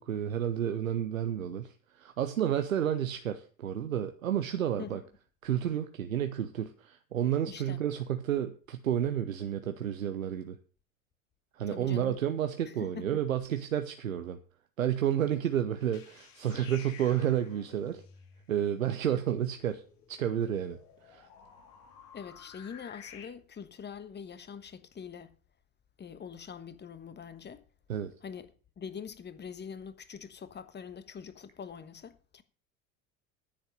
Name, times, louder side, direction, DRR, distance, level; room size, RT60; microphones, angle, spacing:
voice 1, 0.0-5.0 5.4-10.6 11.5-14.4 14.8-18.0 18.5-19.8 20.1-20.8 21.0-21.3 27.9-28.1, right 10 dB, 85° right, 0.8 m, -31 dB
voice 2, 7.5-7.8 11.7-12.2 12.7-13.1 22.1-25.3 26.0-27.6 28.2-28.5 28.8-32.4, left 7 dB, 25° left, 1.3 m, -44 dB
sound 1, 15.8-23.3, left 7 dB, 55° left, 2.9 m, -53 dB
10.0 x 8.1 x 6.6 m
hypercardioid pair, 70°, 40 cm